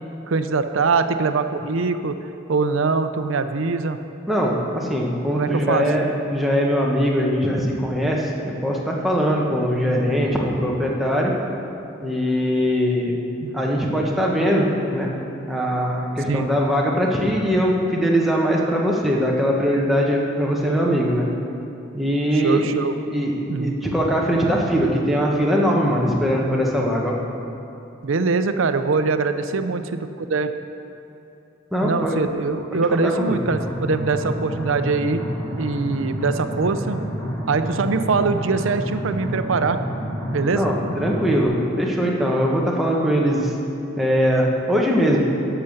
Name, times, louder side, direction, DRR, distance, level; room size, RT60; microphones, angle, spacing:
voice 1, 0.0-2.1 2.5-4.0 5.4-5.9 13.4-13.6 16.3-16.5 22.3-22.9 23.5-23.7 28.0-30.5 31.8-35.2 35.6-37.0 37.5-39.8 40.3-40.6, right 4 dB, 75° right, 10 dB, 0.5 m, -23 dB
voice 2, 4.3-11.3 12.0-13.2 13.5-14.7 14.9-15.1 15.5-21.2 21.9-22.6 23.1-27.2 31.7-32.2 32.7-33.4 40.5-43.5 44.0-45.2, equal, ahead, -3 dB, 1.1 m, -21 dB
sound 1, 33.4-41.4, equal, 15° left, 2.2 m, -29 dB
11.5 x 6.8 x 6.5 m, 2.8 s
head